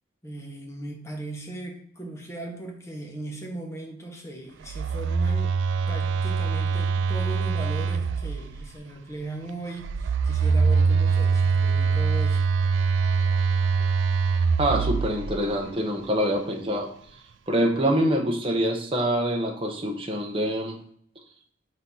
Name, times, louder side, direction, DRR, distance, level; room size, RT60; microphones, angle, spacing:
voice 1, 0.2-5.6 5.9-12.6, right 2 dB, 15° left, 1 dB, 1.0 m, -38 dB
Telephone, 4.6-8.7 9.8-15.5, right 5 dB, 75° right, 0.3 m, -23 dB
voice 2, 14.6-16.9 17.5-20.8, equal, 30° right, 2 dB, 0.9 m, -25 dB
5.9 x 2.9 x 5.5 m, 0.62 s
head